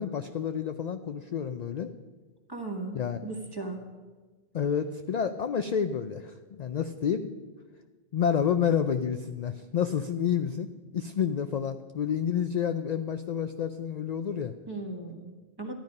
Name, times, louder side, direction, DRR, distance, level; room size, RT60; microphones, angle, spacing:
voice 1, 0.0-1.9 2.9-3.2 4.5-7.3 8.1-14.5, left 8 dB, 55° left, 9 dB, 0.5 m, -29 dB
voice 2, 2.5-3.8 14.7-15.7, right 2 dB, 25° right, 2 dB, 1.5 m, -37 dB
13.0 x 10.5 x 5.3 m, 1.3 s
omnidirectional pair, 1.0 m